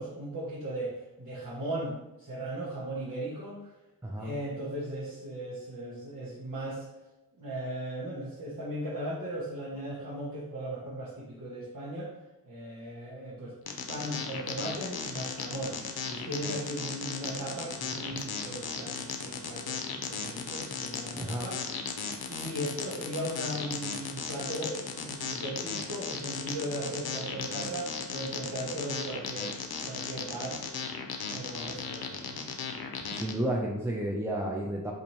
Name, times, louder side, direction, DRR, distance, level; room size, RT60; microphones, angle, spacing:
voice 1, 0.0-3.7 4.2-6.9 7.4-12.1 12.4-13.6 13.9-15.8 16.0-21.6 22.3-29.5 29.8-30.6 31.3-32.4, right 1 dB, 55° right, -9 dB, 1.0 m, -37 dB
voice 2, 4.0-4.3 18.1-18.2 21.1-21.5 33.1-34.9, right 1 dB, 5° right, -1 dB, 0.4 m, -32 dB
sound 1, 13.7-33.3, left 6 dB, 80° left, 0.5 m, -36 dB
4.0 x 2.6 x 3.0 m, 1.0 s
wide cardioid pair, 50°, 37 cm